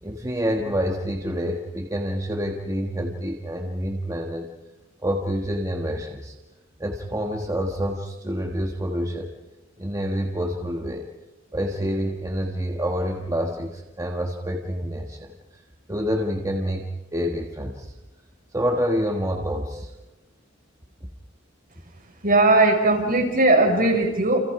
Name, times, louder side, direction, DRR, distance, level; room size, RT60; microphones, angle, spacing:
voice 1, 0.0-4.5 5.0-6.3 6.8-9.3 9.8-11.1 11.5-15.3 15.9-17.9 18.5-19.9 21.0-21.1, equal, 15° right, 1 dB, 1.5 m, -27 dB
voice 2, 22.2-24.4, right 2 dB, 45° right, 1 dB, 5.8 m, -18 dB
29.5 x 28.5 x 4.9 m, 1.1 s
head